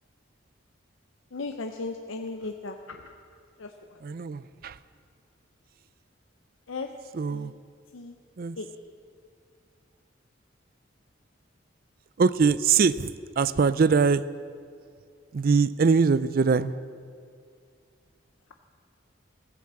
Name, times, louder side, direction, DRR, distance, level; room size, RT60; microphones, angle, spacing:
voice 1, 1.3-3.1 3.6-4.0 6.7-6.9 7.3-7.5 7.9-8.2 8.6-8.7, left 3 dB, 90° left, 5 dB, 0.7 m, -36 dB
voice 2, 4.0-4.8 7.1-7.5 8.4-8.6 12.2-14.2 15.3-16.8, right 5 dB, 50° right, 16 dB, 0.4 m, -23 dB
15.5 x 8.5 x 7.5 m, 2.2 s
head